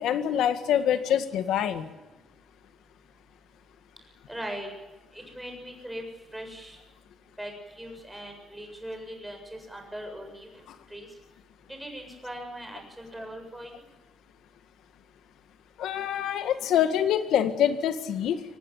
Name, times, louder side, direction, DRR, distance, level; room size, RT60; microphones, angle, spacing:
voice 1, 0.0-1.9 15.8-18.4, left 9 dB, 85° left, 9 dB, 1.9 m, -25 dB
voice 2, 4.3-4.7 5.1-6.0 6.3-6.8 7.4-7.5 7.8-10.5 10.9-11.1 11.8-13.7, equal, 5° right, 3 dB, 7.4 m, -39 dB
25.5 x 19.0 x 9.1 m, 1.1 s
cardioid pair, 150°, 0 cm